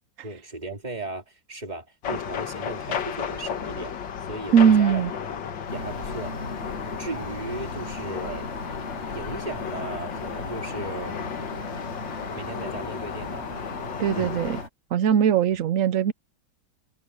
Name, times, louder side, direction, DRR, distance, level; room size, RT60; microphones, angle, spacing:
voice 1, 0.2-3.9 4.3-5.4 5.7-6.3 7.0-8.5 9.1-11.1 12.3-13.6 14.1-14.3, right 2 dB, 20° right, 2.4 m, -36 dB
sound 1, 2.0-14.6, left 7 dB, 70° left, 2.0 m, -34 dB
voice 2, 4.5-5.1 14.0-14.6 14.9-16.1, right 8 dB, 70° right, 0.7 m, -20 dB
sound 2, 5.7-14.7, left 1 dB, 35° left, 6.6 m, -38 dB
omnidirectional pair, 2.1 m